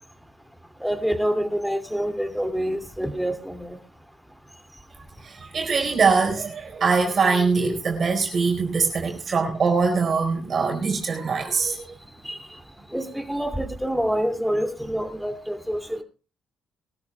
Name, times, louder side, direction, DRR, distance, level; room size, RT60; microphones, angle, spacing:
voice 1, 0.8-3.8 12.3-12.4 12.9-16.0, equal, ahead, 2.6 m, -27 dB
voice 2, 5.2-12.0, right 4 dB, 45° right, 4.5 m, -23 dB
23.0 x 13.0 x 2.3 m
cardioid pair, 90°, 0 cm